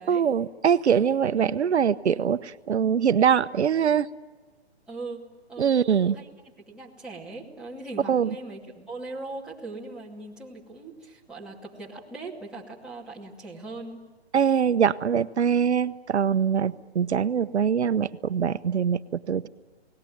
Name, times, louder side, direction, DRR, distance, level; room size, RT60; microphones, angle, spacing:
voice 1, 0.1-4.1 5.6-6.1 8.1-8.3 14.3-19.5, right 7 dB, 85° right, 13 dB, 0.8 m, -23 dB
voice 2, 4.9-5.2 5.5-6.3 6.6-14.0, right 2 dB, ahead, -6 dB, 2.3 m, -40 dB
29.5 x 19.0 x 9.3 m, 1.3 s
hypercardioid pair, 160°, 33 cm